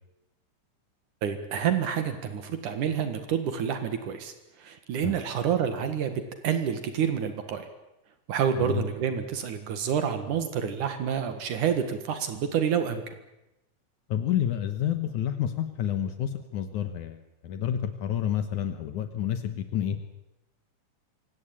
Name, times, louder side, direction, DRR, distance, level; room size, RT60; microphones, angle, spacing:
voice 1, 1.2-4.3 4.6-7.7 8.3-13.1, right 8 dB, 75° right, 8 dB, 3.2 m, -28 dB
voice 2, 14.1-20.0, left 10 dB, 70° left, 9 dB, 2.6 m, -29 dB
26.0 x 17.5 x 8.8 m, 0.90 s
omnidirectional pair, 3.7 m